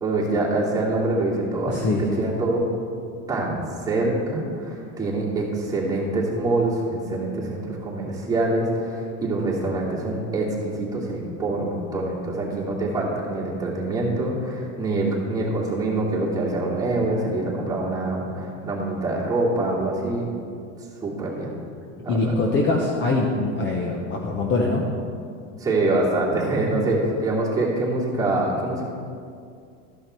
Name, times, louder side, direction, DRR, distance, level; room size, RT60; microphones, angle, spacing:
voice 1, 0.0-1.7 2.2-2.6 3.3-20.2 21.0-21.5 22.0-22.3 25.6-28.9, right 2 dB, 10° right, -6 dB, 2.4 m, -25 dB
voice 2, 1.7-2.2 22.1-24.8, left 2 dB, 25° left, 0 dB, 0.9 m, -23 dB
13.0 x 5.6 x 4.5 m, 2.3 s
supercardioid pair, 130°, 42 cm